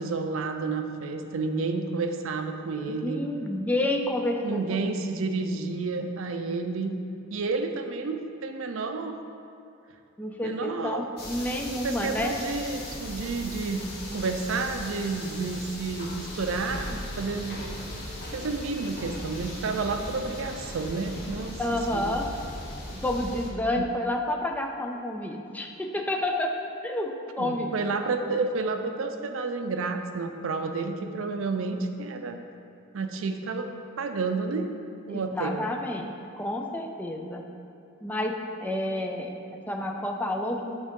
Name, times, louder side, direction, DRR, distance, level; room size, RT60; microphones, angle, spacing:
voice 1, 0.0-3.2 4.4-6.9 7.3-9.2 10.4-11.0 11.7-13.8 14.1-17.6 18.3-21.6 21.9-22.2 23.8-23.9 27.4-32.4 32.9-33.7 34.0-34.7 35.1-35.6, right 4 dB, 70° right, 6 dB, 0.4 m, -30 dB
voice 2, 3.0-4.9 10.2-12.3 21.6-22.3 22.9-26.5 26.8-27.7 35.1-37.4 38.0-39.4 39.7-40.8, left 1 dB, 10° left, 2 dB, 0.3 m, -29 dB
sound 1, 11.2-23.5, left 1 dB, 50° left, 0.9 m, -38 dB
8.7 x 3.7 x 3.6 m, 2.6 s
head